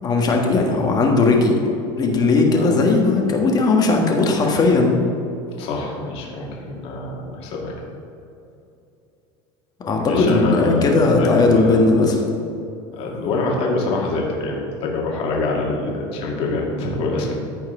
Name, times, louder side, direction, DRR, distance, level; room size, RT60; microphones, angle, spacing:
voice 1, 0.0-1.6 2.0-5.0 9.8-12.2, left 3 dB, 35° left, 1 dB, 1.5 m, -17 dB
voice 2, 2.5-2.9 5.6-7.7 10.0-11.9 12.9-17.3, left 2 dB, 55° left, -2 dB, 2.1 m, -25 dB
14.0 x 4.7 x 3.7 m, 2.7 s
supercardioid pair, 125°, 12 cm